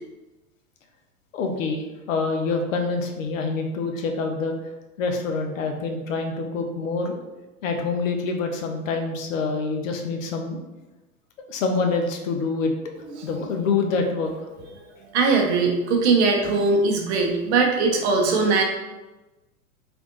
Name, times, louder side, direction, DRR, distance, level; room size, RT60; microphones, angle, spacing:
voice 1, 1.3-4.6 5.0-7.2 7.6-10.6 11.5-12.7 13.2-14.3, left 4 dB, 60° left, 4 dB, 0.6 m, -26 dB
voice 2, 15.1-18.6, right 4 dB, 50° right, 1 dB, 0.7 m, -20 dB
3.3 x 2.5 x 2.9 m, 1.1 s
figure-of-eight pair, 90°, 44 cm